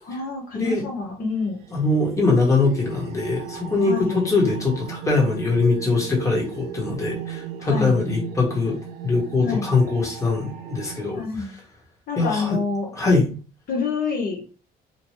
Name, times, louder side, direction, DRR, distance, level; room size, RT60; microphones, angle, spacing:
voice 1, 0.0-1.6 3.9-4.2 7.6-8.0 9.4-9.7 11.1-11.5 12.1-12.9 13.7-14.4, left 4 dB, 60° left, 0 dB, 0.9 m, -27 dB
sound 1, 0.9-11.1, right 8 dB, 85° right, 0.5 m, -37 dB
voice 2, 1.7-8.8 9.0-11.5 12.2-12.6 12.9-13.3, left 3 dB, 20° left, -2 dB, 1.2 m, -22 dB
2.7 x 2.2 x 3.0 m, 0.35 s
cardioid pair, 110°, 17 cm